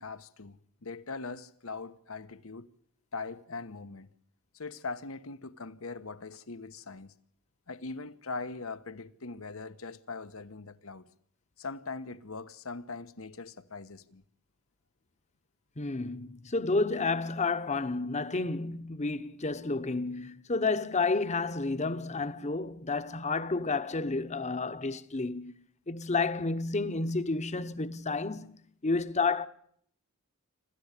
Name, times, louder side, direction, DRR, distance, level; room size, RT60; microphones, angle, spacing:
voice 1, 0.0-2.7 3.1-4.1 4.5-7.1 7.7-11.1 11.6-14.2, left 3 dB, 80° left, 1.2 m, -41 dB
voice 2, 15.8-25.5 25.9-29.5, left 3 dB, 35° left, 1.1 m, -31 dB
26.5 x 13.5 x 8.3 m
head